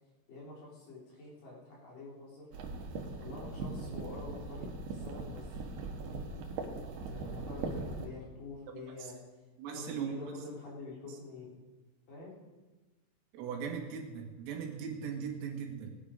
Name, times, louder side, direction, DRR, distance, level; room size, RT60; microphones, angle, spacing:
voice 1, 0.3-2.5 3.2-5.6 6.0-6.2 7.0-9.2 9.7-11.5 12.1-12.3, left 3 dB, 45° left, -5 dB, 4.8 m, -47 dB
sound 1, 2.5-8.1, right 3 dB, 65° right, 3.1 m, -40 dB
voice 2, 9.6-10.3 13.3-15.9, right 7 dB, 85° right, 2 dB, 4.5 m, -39 dB
19.5 x 10.0 x 5.1 m, 1.2 s
omnidirectional pair, 5.8 m